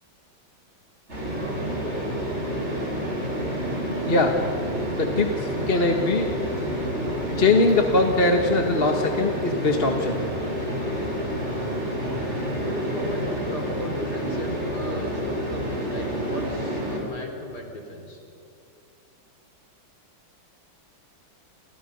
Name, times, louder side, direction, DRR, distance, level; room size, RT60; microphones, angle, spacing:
sound 1, 1.1-17.0, equal, 30° right, 7.5 m, -29 dB
voice 1, 5.0-6.3 7.4-10.1, left 2 dB, 30° left, 4 dB, 1.7 m, -21 dB
voice 2, 12.6-18.2, equal, 45° left, 2 dB, 5.0 m, -36 dB
29.5 x 29.0 x 5.5 m, 2.5 s
omnidirectional pair, 2.4 m